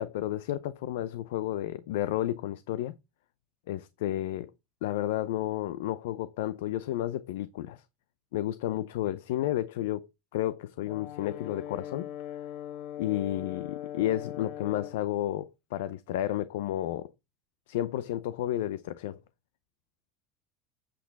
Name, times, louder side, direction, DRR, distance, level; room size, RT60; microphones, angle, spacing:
voice 1, 0.0-2.9 3.7-4.5 4.8-7.8 8.3-10.1 10.3-12.1 13.0-17.1 17.7-19.2, left 13 dB, 85° left, 0.6 m, -31 dB
Brass instrument, 10.9-15.0, left 10 dB, 65° left, 1.1 m, -40 dB
8.4 x 6.2 x 4.1 m
supercardioid pair, 105°, 0 cm